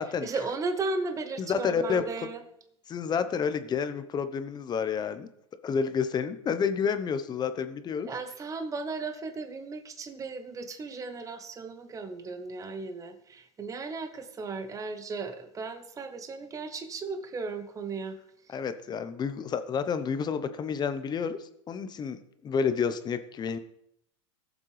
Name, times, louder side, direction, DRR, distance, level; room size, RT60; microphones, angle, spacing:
voice 1, 0.2-2.4 8.0-18.2, right 3 dB, 20° right, 8 dB, 1.0 m, -35 dB
voice 2, 1.4-2.0 2.9-5.3 5.6-8.1 18.5-23.6, left 6 dB, 25° left, 11 dB, 0.8 m, -30 dB
17.0 x 7.3 x 3.3 m, 0.74 s
hypercardioid pair, 115°, 16 cm